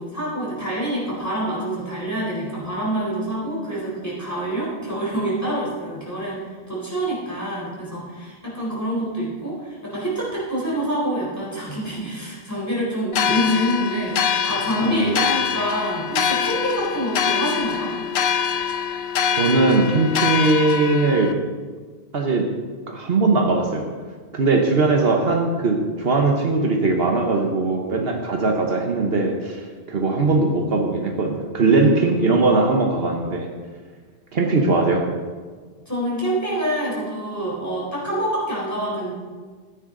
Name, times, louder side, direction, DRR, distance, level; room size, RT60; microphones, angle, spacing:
voice 1, 0.0-17.9 35.9-39.1, equal, 15° left, -6 dB, 4.0 m, -26 dB
sound 1, 13.1-21.3, left 7 dB, 70° left, 0.9 m, -24 dB
voice 2, 14.8-15.2 19.3-21.3 22.1-22.5 22.9-23.9 24.3-33.5 34.3-35.1, right 3 dB, 60° right, 2 dB, 1.2 m, -20 dB
14.0 x 9.4 x 3.8 m, 1.5 s
omnidirectional pair, 1.1 m